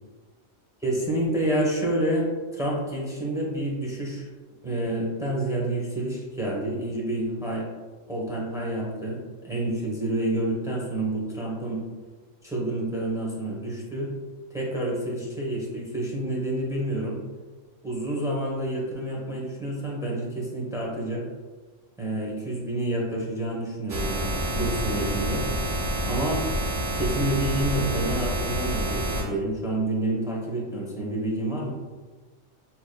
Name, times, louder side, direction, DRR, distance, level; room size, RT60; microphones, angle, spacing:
voice 1, 0.8-4.3 4.6-7.7 8.1-9.2 9.4-11.8 12.4-14.1 14.5-17.2 17.8-21.2 22.0-25.4 26.0-26.4 26.9-31.7, right 1 dB, 5° right, -4 dB, 0.7 m, -28 dB
sound 1, 23.9-29.2, equal, 70° right, 1.1 m, -28 dB
6.5 x 2.9 x 2.2 m, 1.3 s
omnidirectional pair, 1.3 m